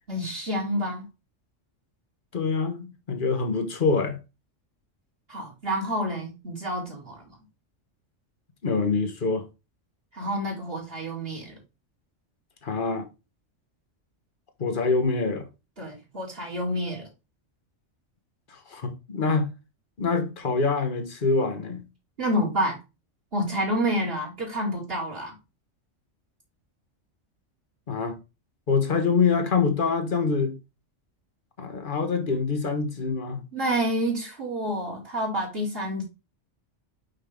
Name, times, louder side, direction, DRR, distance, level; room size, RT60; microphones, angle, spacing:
voice 1, 0.1-1.1 5.3-7.3 10.1-11.5 15.8-17.0 22.2-22.8 23.3-25.4 33.5-36.0, equal, 50° right, 2.7 m, -28 dB
voice 2, 2.3-4.2 8.6-9.5 12.6-13.1 14.6-15.4 18.5-19.5 20.0-21.8 27.9-28.2 28.7-30.6 31.6-33.4, left 4 dB, 45° left, 1.3 m, -25 dB
5.7 x 5.4 x 3.4 m
omnidirectional pair, 1.3 m